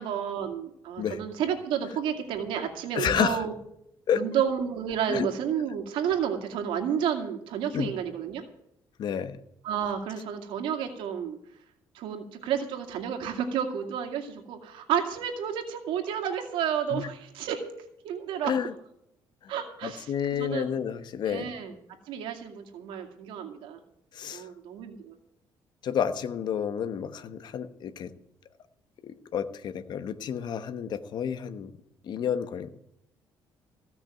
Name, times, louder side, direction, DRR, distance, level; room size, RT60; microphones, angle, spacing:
voice 1, 0.0-3.5 4.1-8.4 9.6-11.4 11.9-17.6 18.0-18.6 19.5-20.1 20.4-20.7 21.3-21.7 22.1-23.8 24.3-25.1, right 8 dB, 85° right, 4 dB, 2.2 m, -31 dB
voice 2, 2.9-3.4 4.1-4.2 5.1-5.3 7.7-7.9 9.0-9.4 16.9-17.1 18.4-18.7 19.4-19.5 19.8-21.5 24.1-24.5 25.8-28.1 29.0-31.7 32.0-32.7, left 8 dB, 60° left, 10 dB, 1.1 m, -30 dB
16.0 x 6.1 x 9.0 m, 0.76 s
cardioid pair, 120°, 9 cm